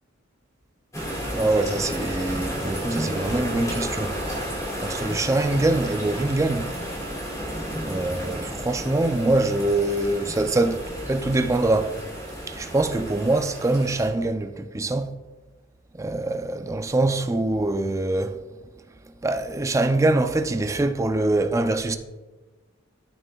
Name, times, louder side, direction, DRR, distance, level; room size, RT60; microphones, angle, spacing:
sound 1, 0.9-14.1, equal, 15° left, 1.7 m, -32 dB
voice 1, 1.3-4.2 4.8-6.7 7.8-12.0 12.5-15.1 15.9-18.4 19.2-22.0, right 2 dB, 15° right, 0.4 m, -24 dB
12.5 x 6.7 x 2.3 m
head